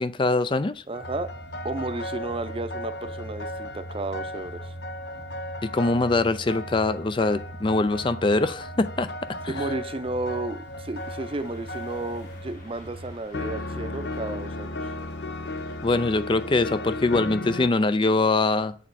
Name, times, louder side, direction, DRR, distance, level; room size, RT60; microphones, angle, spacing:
voice 1, 0.0-0.8 5.6-9.1 9.4-9.7 15.8-18.7, left 2 dB, 30° left, 13 dB, 0.5 m, -23 dB
sound 1, 0.9-12.8 13.3-17.7, left 2 dB, 75° left, 0.8 m, -36 dB
voice 2, 0.9-1.3 1.6-4.7 9.5-14.8, right 2 dB, 30° right, 11 dB, 0.7 m, -32 dB
sound 2, 1.0-13.2, right 1 dB, 90° right, 0.9 m, -42 dB
sound 3, 11.0-16.2, left 1 dB, 50° left, 2.7 m, -52 dB
8.7 x 6.7 x 4.2 m, 0.41 s
head